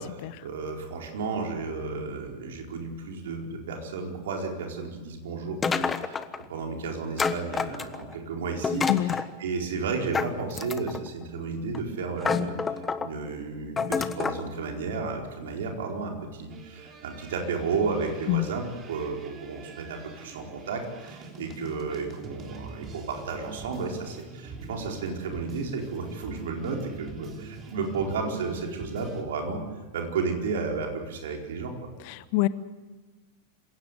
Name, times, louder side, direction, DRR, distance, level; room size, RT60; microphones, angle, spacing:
voice 1, 0.0-29.6 29.9-31.8, right 4 dB, 60° right, 2 dB, 4.4 m, -33 dB
sound 1, 5.6-6.4 7.2-8.1 8.6-9.3 10.1-11.1 11.7-11.9 12.2-13.1 13.8-14.4, left 5 dB, 15° left, 1.2 m, -28 dB
sound 2, 16.5-29.2, right 3 dB, 30° right, 3.5 m, -44 dB
voice 2, 32.0-32.5, left 17 dB, 45° left, 17 dB, 0.9 m, -25 dB
27.0 x 17.0 x 8.1 m, 1.3 s
figure-of-eight pair, 90°, 0 cm